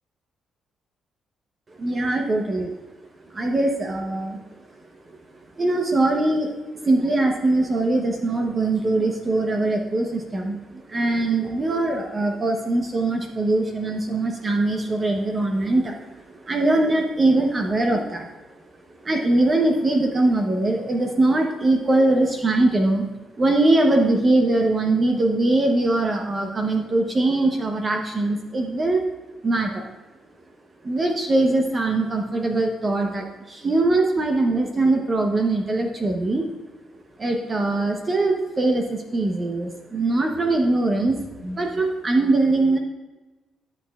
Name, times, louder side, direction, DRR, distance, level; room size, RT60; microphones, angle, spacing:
voice 1, 1.8-2.7 3.3-4.4 5.1-5.2 5.6-18.3 19.0-23.1 23.4-29.0 29.4-29.9 30.8-36.5 37.2-42.8, right 2 dB, 30° right, 2 dB, 0.8 m, -22 dB
12.5 x 6.4 x 2.4 m, 1.2 s
cardioid pair, 90°, 0 cm